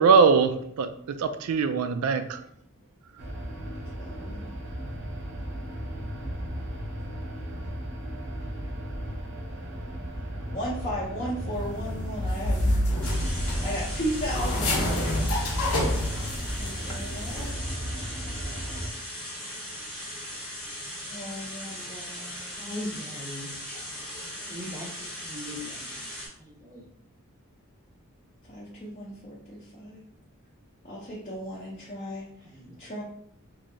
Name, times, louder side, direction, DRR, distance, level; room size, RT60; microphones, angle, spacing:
voice 1, 0.0-2.4, right 5 dB, 80° right, 10 dB, 0.3 m, -22 dB
sound 1, 3.2-18.9, equal, 55° right, 0.7 m, -36 dB
voice 2, 4.0-4.5 10.5-12.8 13.6-14.9 16.5-17.5 21.1-22.7 28.5-30.0 30.8-32.3 32.8-33.0, equal, 30° left, -6 dB, 0.5 m, -35 dB
sound 2, 11.5-16.9 17.2-17.5, left 1 dB, 85° left, 0.7 m, -28 dB
sound 3, 13.0-26.3, left 1 dB, 5° left, 0.9 m, -39 dB
voice 3, 22.6-23.5 24.2-25.9 26.4-26.8 32.4-32.8, left 1 dB, 15° right, -1 dB, 0.5 m, -40 dB
3.1 x 2.6 x 2.5 m, 0.68 s
head